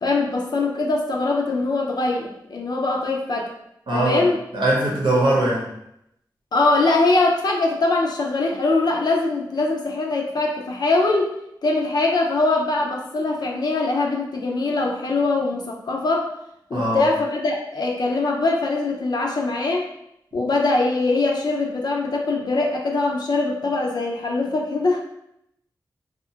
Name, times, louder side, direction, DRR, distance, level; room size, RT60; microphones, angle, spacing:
voice 1, 0.0-3.5 3.9-4.4 6.5-11.3 11.6-16.3 16.7-19.9 20.3-25.0, left 3 dB, 65° left, 0 dB, 0.4 m, -22 dB
voice 2, 3.9-4.3 4.5-5.7 16.7-17.1, right 1 dB, 85° right, -4 dB, 0.8 m, -21 dB
2.7 x 2.4 x 2.7 m, 0.78 s
wide cardioid pair, 90°, 8 cm